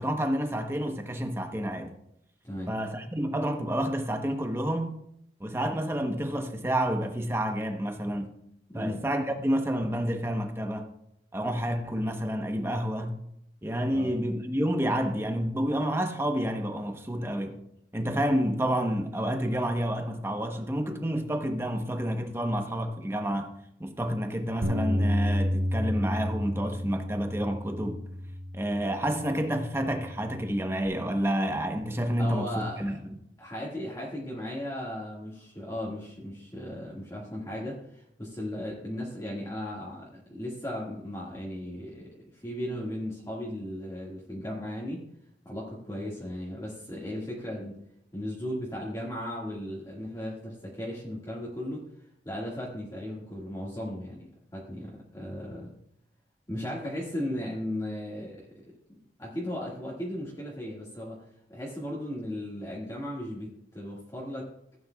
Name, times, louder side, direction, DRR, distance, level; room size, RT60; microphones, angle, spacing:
voice 1, 0.0-1.9 2.7-5.0 5.4-8.3 8.7-10.9 11.3-13.2 13.6-17.6 17.9-23.5 23.8-28.0 28.5-33.1, equal, 15° right, 0.9 m, -29 dB
voice 2, 8.7-9.0 13.9-14.1 32.2-33.0 33.4-45.0 45.4-47.8 48.1-51.8 52.2-54.3 54.5-55.7 56.5-58.6 58.9-61.2 61.5-64.5, left 1 dB, 20° left, 1.7 m, -36 dB
Bass guitar, 24.6-29.1 29.7-30.9, left 1 dB, 60° right, 1.2 m, -31 dB
15.5 x 8.7 x 2.3 m
head